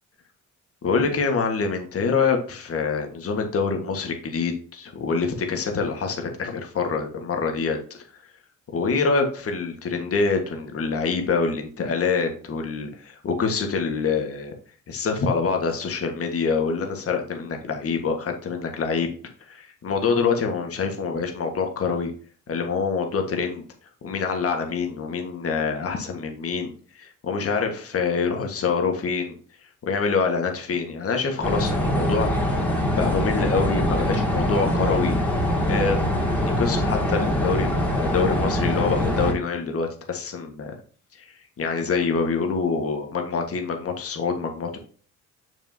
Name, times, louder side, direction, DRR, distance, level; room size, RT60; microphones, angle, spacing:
voice 1, 0.8-8.0 8.7-14.5 14.9-19.1 19.5-22.1 22.5-23.6 24.0-29.3 29.9-32.3 32.9-35.2 35.7-36.0 36.3-40.7 41.1-44.8, left 5 dB, 50° left, 4 dB, 1.7 m, -25 dB
sound 1, 31.4-39.3, left 1 dB, 5° left, 2.6 m, -23 dB
6.7 x 6.3 x 2.9 m, 0.43 s
cardioid pair, 90°, 30 cm